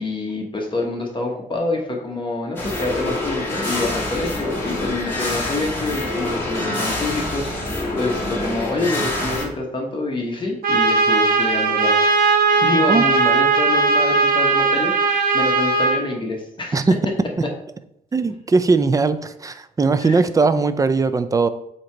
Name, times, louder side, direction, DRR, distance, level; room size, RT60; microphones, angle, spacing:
voice 1, 0.0-11.9 12.5-16.9 20.0-20.2, left 2 dB, 35° left, 0 dB, 1.1 m, -27 dB
sound 1, 2.6-9.5, left 2 dB, 15° left, 2.3 m, -26 dB
Trumpet, 10.6-16.0, right 4 dB, 80° right, 1.1 m, -18 dB
voice 2, 18.1-21.5, right 4 dB, 25° right, 12 dB, 0.4 m, -19 dB
7.8 x 2.9 x 4.5 m, 0.78 s
cardioid pair, 105°, 15 cm